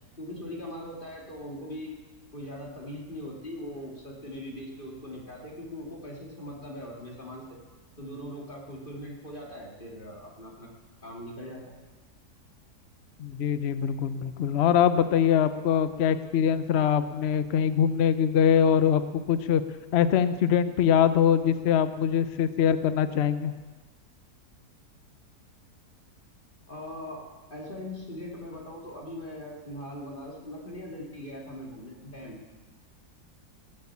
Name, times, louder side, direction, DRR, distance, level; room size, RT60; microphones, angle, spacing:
voice 1, 0.2-1.9 2.3-7.6 8.0-10.7 11.0-11.8 26.7-27.2 27.5-32.4, left 1 dB, 30° left, -2 dB, 2.7 m, -40 dB
voice 2, 13.2-19.6 19.9-23.5, left 8 dB, 55° left, 12 dB, 0.8 m, -23 dB
19.5 x 8.2 x 8.5 m, 1.3 s
omnidirectional pair, 1.7 m